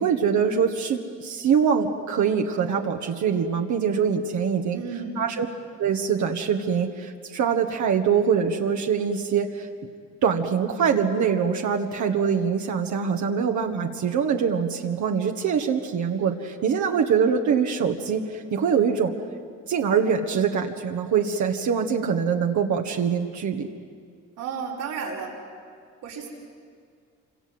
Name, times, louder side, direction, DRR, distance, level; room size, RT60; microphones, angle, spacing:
voice 1, 0.0-4.8 5.2-5.5 5.8-9.7 10.2-19.1 19.7-23.7, right 7 dB, 70° right, 3 dB, 1.7 m, -24 dB
voice 2, 4.7-5.2 24.4-25.3 26.0-26.3, right 6 dB, 90° right, -4 dB, 6.2 m, -32 dB
27.0 x 26.5 x 7.9 m, 2.1 s
cardioid pair, 90°, 30 cm